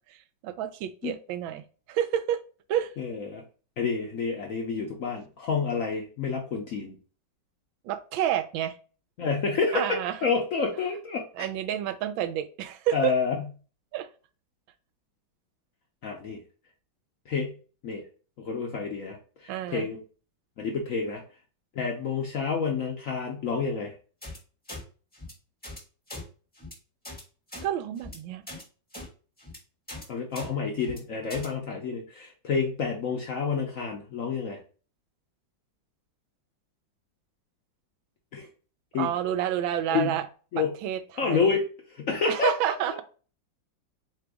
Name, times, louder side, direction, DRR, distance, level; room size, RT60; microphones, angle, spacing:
voice 1, 0.4-1.6 1.9-2.4 2.7-2.9 7.8-8.7 9.7-10.2 11.3-13.1 13.9-14.1 19.5-19.9 27.6-28.4 39.0-40.3 40.8-41.6 42.3-43.0, right 11 dB, 90° right, 10 dB, 1.3 m, -29 dB
voice 2, 3.0-3.4 3.8-7.0 9.2-9.8 10.2-11.3 12.9-13.4 16.0-16.4 17.3-17.5 17.8-18.0 18.4-19.2 19.4-20.0 20.6-21.2 21.8-23.9 30.1-34.6 38.3-38.5 38.9-39.1 39.9-40.2 40.5-40.7 41.1-41.6 41.9-43.0, left 5 dB, 65° left, 1 dB, 0.8 m, -29 dB
sound 1, 24.2-24.4 24.7-24.8 25.1-25.3 25.6-25.8 26.1-26.2 26.5-26.7 27.0-27.2 27.5-27.7 28.0-28.2 28.5-28.6 28.9-29.1 29.4-29.6 29.9-30.0 30.3-30.5 30.8-31.0 31.3-31.5, left 1 dB, 5° left, 0.8 m, -40 dB
3.8 x 3.4 x 3.4 m, 0.37 s
omnidirectional pair, 2.1 m